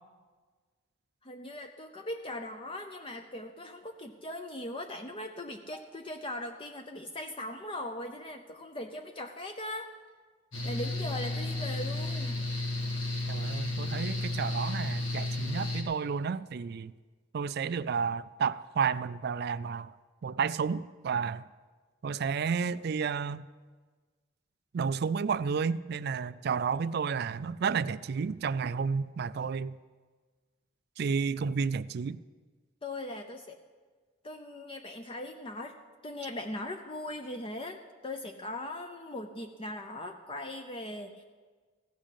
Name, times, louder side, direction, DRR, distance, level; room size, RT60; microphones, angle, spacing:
voice 1, 1.2-9.9 10.6-12.3 32.8-33.6 34.2-35.8 36.0-41.2, left 1 dB, 25° left, 0.6 m, -39 dB
Mechanical fan, 10.5-15.8, left 2 dB, 85° left, 2.1 m, -33 dB
voice 2, 13.3-16.9 17.3-19.9 20.2-21.5 22.0-23.5 24.7-29.8 31.0-32.2, right 6 dB, 55° right, 0.4 m, -31 dB
15.5 x 6.2 x 8.1 m
head